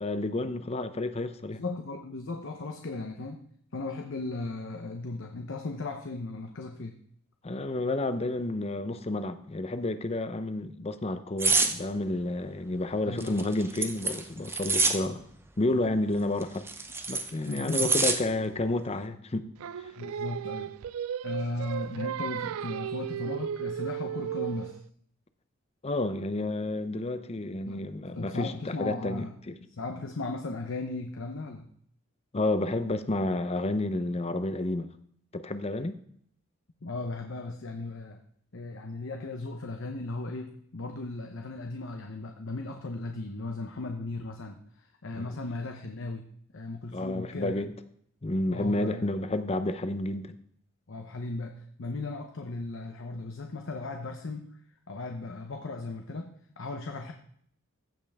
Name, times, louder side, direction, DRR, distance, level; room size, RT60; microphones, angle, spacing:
voice 1, 0.0-1.6 7.4-15.3 15.6-16.6 17.1-19.5 25.8-29.5 32.3-34.9 35.3-36.0 45.2-45.4 46.9-47.7 48.2-50.4, left 2 dB, 30° left, 11 dB, 0.6 m, -30 dB
voice 2, 1.5-3.4 3.7-7.0 13.0-13.4 17.5-18.0 20.0-20.8 21.2-24.8 27.7-27.9 28.1-29.3 29.8-31.7 36.8-38.2 38.5-46.3 46.5-47.6 48.5-49.1 50.9-54.5 54.9-57.1, left 2 dB, 60° left, 4 dB, 0.7 m, -36 dB
sound 1, 11.4-11.7 13.2-15.0 16.4-18.2 18.6-18.8, right 3 dB, 10° right, 0.7 m, -26 dB
Singing, 19.6-24.8, right 9 dB, 75° right, 0.3 m, -35 dB
15.0 x 5.5 x 3.5 m, 0.66 s
head